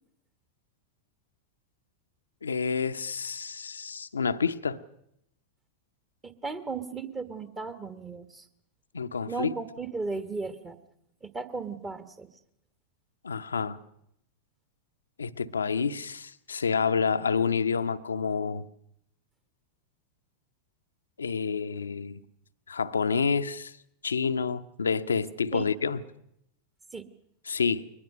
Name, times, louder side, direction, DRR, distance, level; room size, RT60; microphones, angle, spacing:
voice 1, 2.4-4.8 8.9-9.5 13.2-13.8 15.2-18.7 21.2-22.2 22.7-23.7 24.0-26.0 27.5-27.8, left 5 dB, 75° left, 0.7 m, -28 dB
voice 2, 6.2-8.5 9.3-10.8 11.2-12.3 25.5-25.7 26.9-27.1, right 4 dB, 20° right, 1.3 m, -36 dB
22.5 x 20.0 x 6.6 m
figure-of-eight pair, 90°, 0 cm